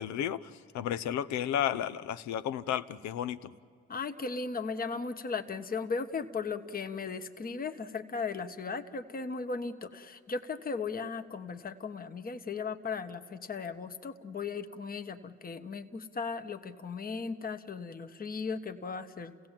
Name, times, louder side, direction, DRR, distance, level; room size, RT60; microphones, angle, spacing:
voice 1, 0.0-3.5, left 10 dB, 70° left, 14 dB, 0.9 m, -33 dB
voice 2, 3.9-19.5, left 4 dB, 30° left, 7 dB, 1.2 m, -37 dB
30.0 x 16.5 x 7.4 m, 2.4 s
supercardioid pair, 80°, 29 cm